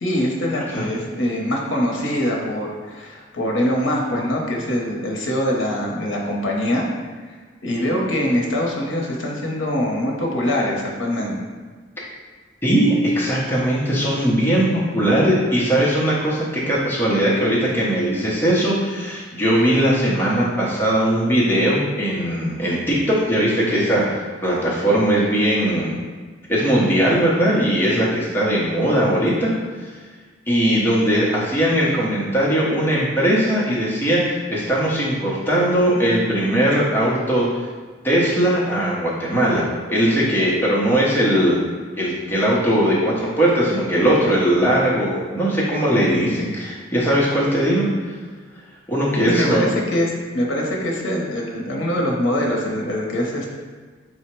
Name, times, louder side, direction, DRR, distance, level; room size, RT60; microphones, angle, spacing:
voice 1, 0.0-6.9 7.6-11.4 49.3-53.5, equal, 70° left, -1 dB, 0.8 m, -23 dB
voice 2, 12.6-25.9 26.5-29.5 30.5-37.7 38.0-41.6 42.0-47.9 48.9-49.6, right 1 dB, 10° left, -6 dB, 0.7 m, -19 dB
4.7 x 2.1 x 4.3 m, 1.5 s
head